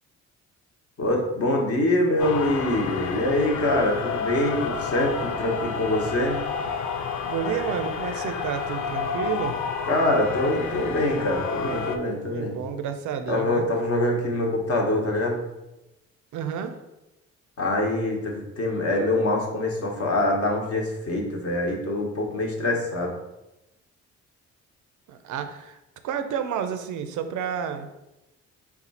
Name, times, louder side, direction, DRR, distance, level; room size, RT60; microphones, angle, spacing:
voice 1, 1.0-6.4 9.9-12.6 13.3-15.4 17.6-23.1, left 1 dB, 50° left, 0 dB, 1.0 m, -24 dB
sound 1, 2.2-12.0, left 6 dB, 70° left, 0.5 m, -30 dB
voice 2, 7.3-9.6 12.3-13.6 16.3-16.8 25.1-25.8 26.0-27.9, right 8 dB, 75° right, 8 dB, 0.5 m, -30 dB
4.1 x 2.4 x 4.1 m, 0.95 s
cardioid pair, 90°, 30 cm